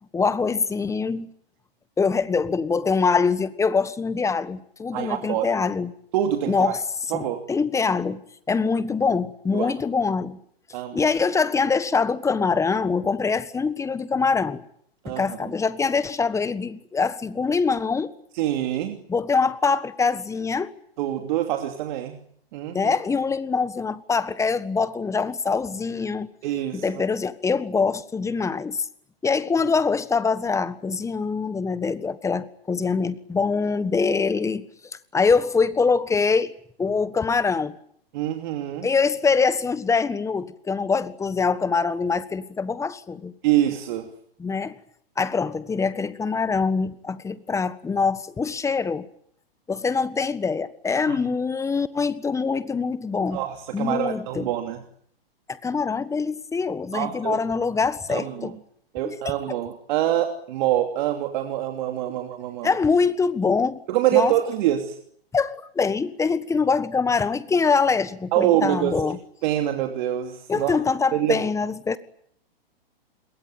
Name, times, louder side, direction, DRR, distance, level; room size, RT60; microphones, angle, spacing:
voice 1, 0.1-1.3 2.0-5.9 6.5-6.8 7.1-8.2 8.5-10.4 10.9-14.6 15.0-18.1 19.1-20.7 22.7-26.3 26.7-28.8 29.2-34.7 35.1-36.5 36.8-37.7 38.8-43.3 44.4-44.8 45.2-49.1 49.7-53.4 53.7-54.5 55.5-58.6 59.0-59.1 59.5-59.6 62.1-62.2 62.6-63.8 64.1-64.3 65.3-69.2 70.5-72.0, left 5 dB, 10° left, 1.4 m, -24 dB
voice 2, 4.9-5.6 6.1-6.7 7.1-7.4 9.5-9.7 10.7-11.1 15.0-15.2 18.4-19.0 21.0-22.2 22.5-22.9 26.4-26.8 38.1-38.9 43.4-44.1 51.1-51.2 53.3-54.8 56.9-57.4 58.1-58.5 58.9-62.7 63.9-65.0 68.3-69.0 69.4-70.8 71.1-71.4, right 12 dB, 50° right, 3.0 m, -25 dB
27.5 x 22.0 x 9.2 m
hypercardioid pair, 130°, 31 cm